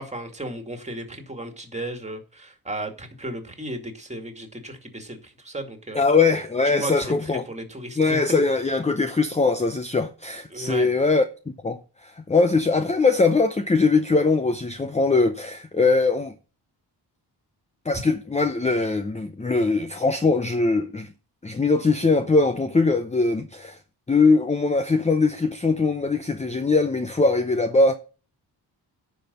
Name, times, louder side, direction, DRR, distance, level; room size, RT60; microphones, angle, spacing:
voice 1, 0.0-6.0 6.7-8.2 10.5-10.9, right 1 dB, 15° right, 2.2 m, -34 dB
voice 2, 5.9-7.5 8.0-16.3 17.8-21.1 21.4-23.8 24.1-27.9, left 3 dB, 15° left, 0.7 m, -21 dB
10.0 x 5.2 x 6.7 m
cardioid pair, 100°, 43 cm